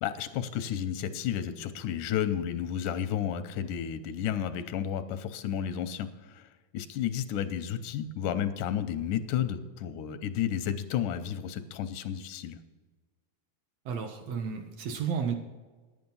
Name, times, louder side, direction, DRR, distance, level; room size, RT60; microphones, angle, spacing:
voice 1, 0.0-6.5 6.7-12.6, left 9 dB, 90° left, 10 dB, 2.3 m, -32 dB
voice 2, 13.8-15.3, right 6 dB, 70° right, 5 dB, 1.8 m, -32 dB
11.0 x 8.9 x 5.5 m, 1.3 s
omnidirectional pair, 3.5 m